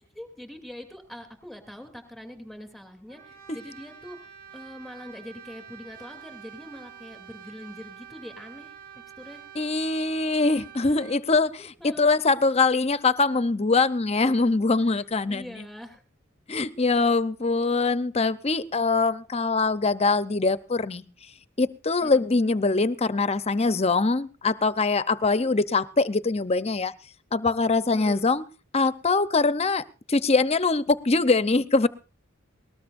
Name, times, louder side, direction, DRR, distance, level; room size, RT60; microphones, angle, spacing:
voice 1, 0.1-8.7 9.2-9.5 11.6-12.2 15.3-16.0 22.0-22.3 27.9-28.3, left 1 dB, ahead, 6 dB, 2.9 m, -43 dB
Brass instrument, 3.1-11.3, right 9 dB, 50° right, 4.4 m, -47 dB
voice 2, 9.6-15.5 16.5-21.0 21.6-26.9 27.3-28.4 28.7-29.8 30.1-31.9, left 3 dB, 30° left, 14 dB, 0.8 m, -23 dB
20.0 x 19.0 x 2.6 m, 0.34 s
head